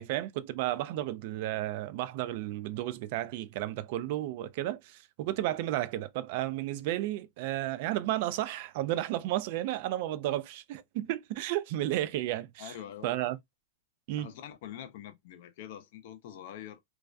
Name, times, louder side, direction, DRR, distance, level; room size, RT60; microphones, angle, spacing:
voice 1, 0.0-12.7 13.0-13.4 14.1-14.3, right 14 dB, 55° right, 0.3 m, -33 dB
voice 2, 12.6-13.2 14.2-16.8, left 10 dB, 60° left, 0.5 m, -45 dB
2.3 x 2.1 x 2.4 m
hypercardioid pair, 135°, 0 cm